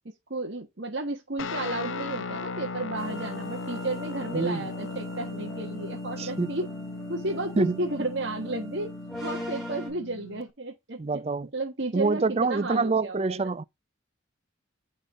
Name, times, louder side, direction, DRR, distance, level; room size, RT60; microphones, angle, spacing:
voice 1, 0.3-6.7 7.1-8.9 9.2-11.2 11.5-13.5, right 2 dB, 55° right, 1.3 m, -33 dB
Guitar, 1.4-10.5, left 3 dB, 70° left, 0.7 m, -37 dB
sound 1, 3.0-9.9, equal, ahead, 5.1 m, -41 dB
voice 2, 4.3-4.6 6.2-6.5 7.6-7.8 11.0-11.5 11.9-13.6, right 3 dB, 30° right, 0.4 m, -26 dB
9.1 x 3.8 x 3.5 m
head